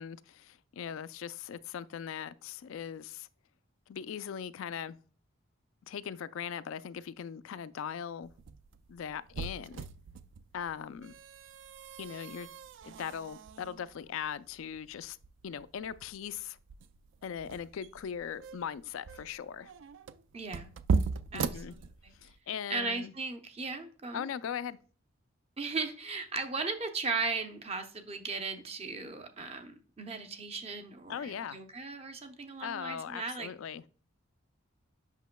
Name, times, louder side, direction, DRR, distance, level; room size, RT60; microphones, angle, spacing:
voice 1, 0.0-3.3 3.9-5.0 5.9-8.3 8.9-9.9 10.5-11.1 12.0-12.5 12.8-15.2 15.4-16.6 17.2-19.7 21.3-21.8 22.1-23.1 24.1-24.8 31.1-31.6 32.6-33.8, left 8 dB, 75° left, 0.3 m, -39 dB
sound 1, 8.2-22.4, right 5 dB, 65° right, 0.3 m, -38 dB
voice 2, 20.3-20.7 21.3-22.1 22.7-24.3 25.6-33.5, right 4 dB, 30° right, 0.7 m, -37 dB
8.2 x 6.0 x 2.2 m
head